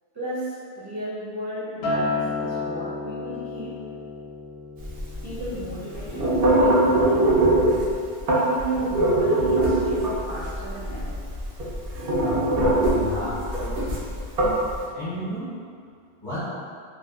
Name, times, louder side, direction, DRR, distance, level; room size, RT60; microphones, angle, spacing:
voice 1, 0.1-3.8 5.2-7.9 8.3-11.2, right 1 dB, 30° right, -12 dB, 0.5 m, -34 dB
Acoustic guitar, 1.8-6.3 6.6-7.0, left 3 dB, 75° left, 0.8 m, -31 dB
sound 1, 4.8-14.8, right 1 dB, 70° right, 0.8 m, -22 dB
voice 2, 12.9-14.0 14.9-15.5 16.2-16.4, equal, 50° left, -12 dB, 0.8 m, -33 dB
2.6 x 2.2 x 2.2 m, 2.2 s
omnidirectional pair, 1.1 m